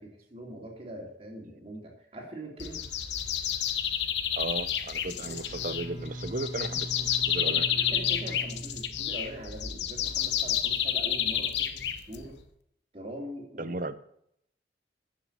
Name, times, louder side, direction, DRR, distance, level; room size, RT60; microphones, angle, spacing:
voice 1, 0.0-2.9 5.1-5.4 7.4-12.4 12.9-13.7, right 1 dB, 35° right, 0 dB, 3.1 m, -42 dB
sound 1, 2.6-12.4, left 9 dB, 75° left, 1.0 m, -30 dB
voice 2, 4.3-7.6 13.6-14.0, right 2 dB, 50° right, 13 dB, 0.8 m, -35 dB
Bowed string instrument, 5.1-9.4, right 1 dB, 15° right, 4.1 m, -41 dB
13.5 x 6.6 x 7.4 m, 0.73 s
head